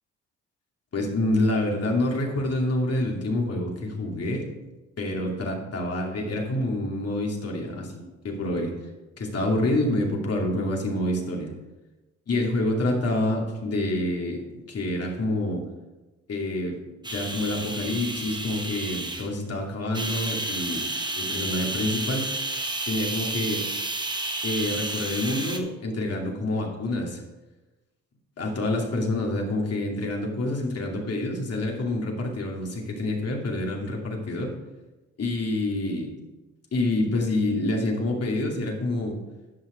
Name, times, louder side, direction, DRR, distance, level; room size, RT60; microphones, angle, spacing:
voice 1, 0.9-4.4 5.0-8.7 9.2-11.5 12.3-15.6 16.3-16.8 17.1-20.8 21.2-22.3 22.9-23.7 24.4-27.2 28.4-34.5 35.2-36.1 36.7-39.2, left 1 dB, 50° left, 0 dB, 2.5 m, -27 dB
sound 1, 17.0-19.4 19.9-25.6, right 2 dB, 15° right, 1.2 m, -31 dB
11.0 x 5.8 x 5.0 m, 1.1 s
supercardioid pair, 65°, 32 cm